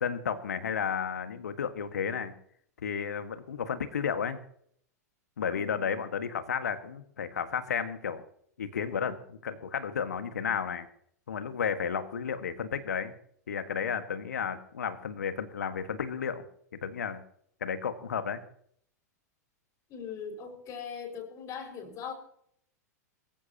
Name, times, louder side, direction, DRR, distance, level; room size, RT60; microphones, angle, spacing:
voice 1, 0.0-2.3 2.8-4.4 5.4-8.2 8.6-10.9 11.3-13.1 13.5-16.4 16.7-17.2 17.6-18.4, left 7 dB, 70° left, 9 dB, 1.7 m, -32 dB
voice 2, 5.5-5.9 19.9-22.1, left 7 dB, 35° left, 2 dB, 5.6 m, -40 dB
24.0 x 14.5 x 2.9 m, 0.66 s
figure-of-eight pair, 90°, 9 cm